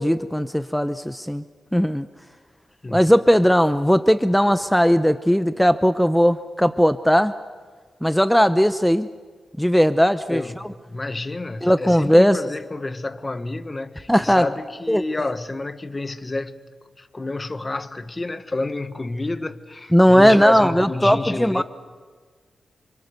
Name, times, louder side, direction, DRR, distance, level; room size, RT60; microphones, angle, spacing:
voice 1, 0.0-1.4 1.7-2.1 2.9-7.3 8.0-9.1 9.6-10.4 11.6-12.4 14.1-14.5 14.9-15.0 19.9-21.6, equal, ahead, 0.7 m, -17 dB
voice 2, 10.3-16.6 17.0-21.6, left 2 dB, 25° left, 1.3 m, -29 dB
29.5 x 26.0 x 6.7 m
cardioid pair, 95°, 0 cm